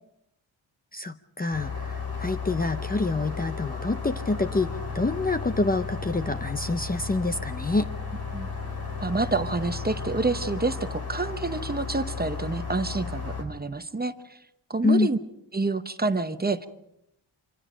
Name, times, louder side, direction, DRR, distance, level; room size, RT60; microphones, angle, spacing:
voice 1, 0.9-7.9 14.8-15.1, left 3 dB, 20° left, 9 dB, 0.8 m, -27 dB
sound 1, 1.5-13.4, left 5 dB, 50° left, 5.1 m, -34 dB
voice 2, 9.0-14.4 14.7-15.2 15.5-16.7, right 3 dB, 20° right, 9 dB, 0.9 m, -28 dB
26.0 x 26.0 x 5.1 m, 0.82 s
wide cardioid pair, 120°, 48 cm